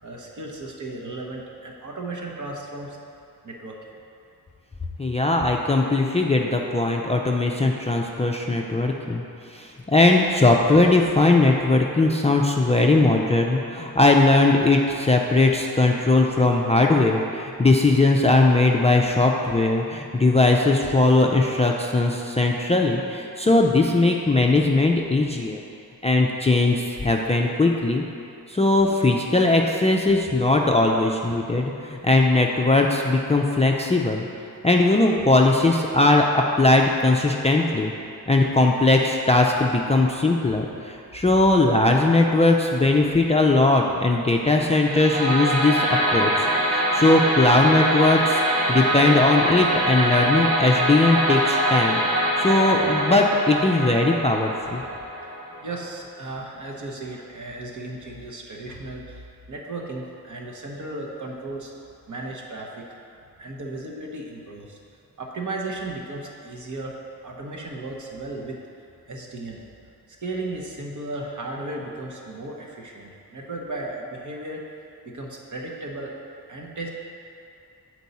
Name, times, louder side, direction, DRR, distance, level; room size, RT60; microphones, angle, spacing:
voice 1, 0.0-3.0 3.4-4.0 55.2-55.3 55.6-61.7 62.1-63.0 63.4-64.8 65.2-67.0 67.2-68.6 69.1-69.6 70.1-74.6 75.0-76.2 76.5-76.9, right 2 dB, 50° right, -1 dB, 1.0 m, -35 dB
voice 2, 5.0-9.2 9.5-25.6 26.0-28.0 28.5-34.2 34.6-37.9 38.3-48.4 48.7-52.0 52.4-54.8, left 2 dB, 20° left, 0 dB, 0.4 m, -19 dB
sound 1, 44.8-55.8, right 1 dB, 85° right, 1.4 m, -23 dB
8.0 x 4.6 x 4.1 m, 2.6 s
wide cardioid pair, 90°, 38 cm